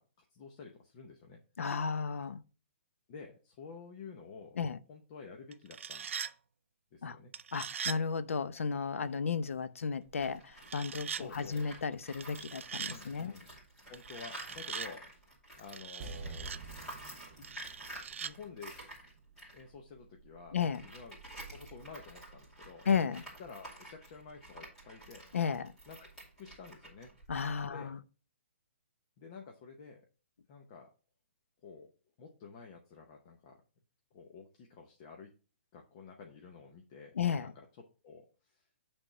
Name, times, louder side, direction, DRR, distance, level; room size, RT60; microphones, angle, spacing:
voice 1, 0.0-1.4 3.1-4.6 4.9-6.1 6.9-7.3 11.1-11.6 12.9-13.5 13.9-15.2 15.6-16.6 17.4-17.5 18.2-18.7 19.5-20.6 20.8-21.2 21.5-22.9 23.4-25.2 25.9-26.1 26.4-27.1 27.7-27.9 29.2-30.0 30.5-30.9 31.6-31.9 32.2-33.6 34.1-35.3 35.7-37.6 38.0-38.7, left 5 dB, 25° left, 0.7 m, -50 dB
voice 2, 1.6-2.4 4.6-4.8 7.0-7.2 7.5-13.3 20.5-20.8 22.9-23.2 25.3-25.7 27.3-28.0 37.1-37.5, left 6 dB, 85° left, 0.8 m, -33 dB
sound 1, 5.5-6.3 7.3-8.0 10.6-11.2 12.2-13.0 13.9-14.9 15.7-16.6 17.4-18.3, right 7 dB, 70° right, 0.5 m, -41 dB
Tools, 10.1-15.9 16.2-27.7, right 1 dB, 5° left, 2.5 m, -50 dB
sound 2, 16.0-19.2 19.5-19.6, right 3 dB, 25° right, 0.9 m, -48 dB
8.8 x 3.5 x 5.3 m
hypercardioid pair, 175°, 7 cm